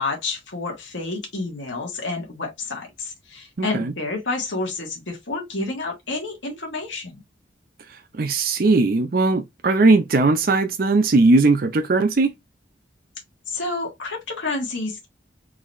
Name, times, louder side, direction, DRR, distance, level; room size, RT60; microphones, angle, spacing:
voice 1, 0.0-7.2 13.5-15.0, left 3 dB, 80° left, 1.5 m, -29 dB
voice 2, 3.6-3.9 8.2-12.3, right 3 dB, 50° right, 0.5 m, -18 dB
3.9 x 2.8 x 3.1 m
head